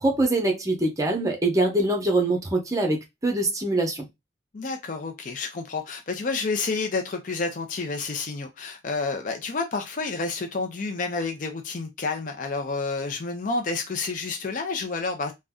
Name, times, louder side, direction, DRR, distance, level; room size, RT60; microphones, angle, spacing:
voice 1, 0.0-4.1, right 2 dB, 20° right, 0.7 m, -24 dB
voice 2, 4.5-15.3, left 4 dB, 45° left, 0.5 m, -29 dB
2.6 x 2.1 x 3.5 m
head